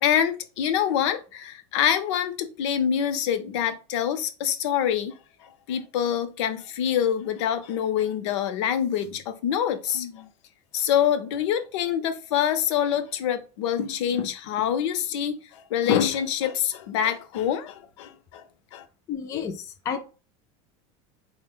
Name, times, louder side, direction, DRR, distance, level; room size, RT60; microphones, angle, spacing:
voice 1, 0.0-10.3 10.7-18.4 18.7-18.8, left 9 dB, 70° left, 0.6 m, -26 dB
voice 2, 19.1-20.0, left 7 dB, 20° left, 0.4 m, -31 dB
4.1 x 2.1 x 3.7 m
supercardioid pair, 175°, 15 cm